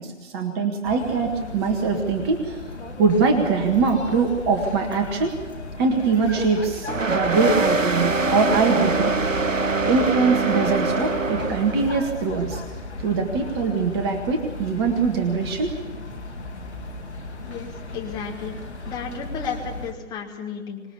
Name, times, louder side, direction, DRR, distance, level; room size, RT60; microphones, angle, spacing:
voice 1, 0.0-2.6 3.0-5.3 5.8-9.1 9.8-12.6 13.0-15.7, right 4 dB, 20° right, 4 dB, 1.7 m, -22 dB
sound 1, 0.8-19.9, left 3 dB, 60° left, 3.4 m, -36 dB
sound 2, 6.9-12.0, right 3 dB, 80° right, 1.1 m, -23 dB
voice 2, 17.4-18.6 18.8-20.8, left 6 dB, 10° left, -1 dB, 2.3 m, -33 dB
25.5 x 20.5 x 7.0 m, 1.3 s
figure-of-eight pair, 135°, 38 cm